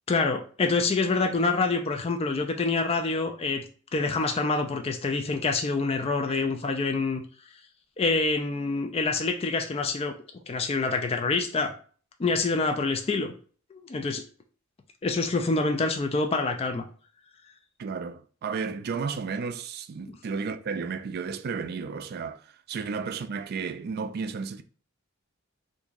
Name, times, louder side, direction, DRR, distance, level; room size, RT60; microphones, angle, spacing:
voice 1, 0.1-3.6 3.9-7.2 8.0-10.1 10.5-11.7 12.2-13.3 13.7-14.2 15.0-16.9 20.1-20.2, left 3 dB, 30° left, 0.4 m, -26 dB
voice 2, 17.8-24.6, right 5 dB, 50° right, 0.3 m, -33 dB
2.9 x 2.6 x 3.6 m
head